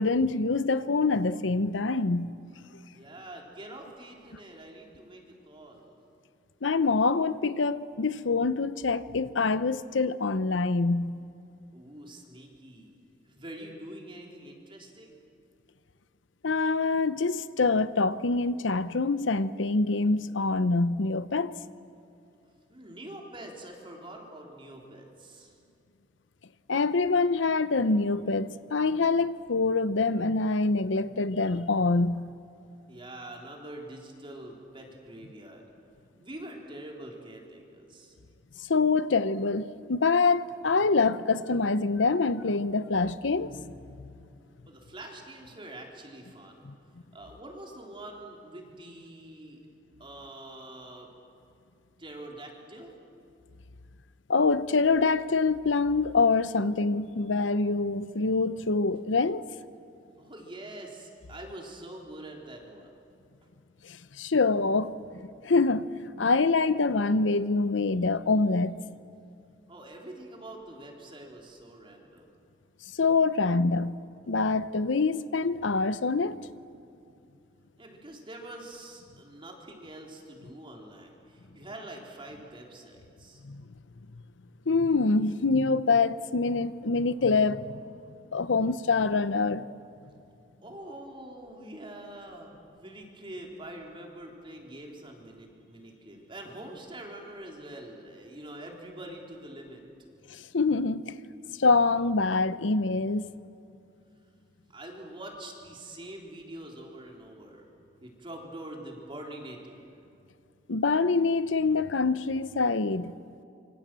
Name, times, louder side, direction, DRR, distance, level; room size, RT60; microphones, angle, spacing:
voice 1, 0.0-2.3 6.6-11.2 16.4-21.5 26.7-32.3 38.7-43.7 44.0-44.1 46.6-46.7 54.3-59.4 63.8-65.9 66.2-68.8 73.0-74.0 74.3-76.4 83.4-83.6 84.7-87.7 88.3-89.6 100.3-101.1 101.6-103.3 110.7-113.2, left 3 dB, 90° left, 0.8 m, -25 dB
voice 2, 2.9-5.9 11.7-13.0 13.3-15.2 22.7-25.5 32.9-35.6 36.2-38.1 44.7-46.7 47.1-49.6 50.0-51.1 52.0-53.0 60.2-62.9 69.7-72.3 77.8-83.4 90.6-99.8 104.7-107.7 108.0-109.8, right 1 dB, 30° right, 3.6 m, -45 dB
26.5 x 24.5 x 7.6 m
head